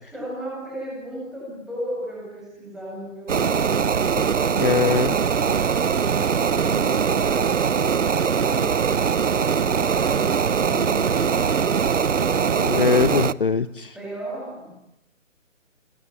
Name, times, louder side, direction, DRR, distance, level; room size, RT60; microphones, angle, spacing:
voice 1, 0.1-5.6 6.4-7.9 8.1-8.9 9.2-12.7 13.9-14.7, right 1 dB, ahead, -5 dB, 8.0 m, -35 dB
sound 1, 3.3-13.3, right 6 dB, 65° right, 1.0 m, -21 dB
voice 2, 4.6-5.1 12.6-13.9, left 5 dB, 40° left, 14 dB, 1.0 m, -21 dB
26.0 x 22.5 x 9.8 m, 0.83 s
hypercardioid pair, 175°, 39 cm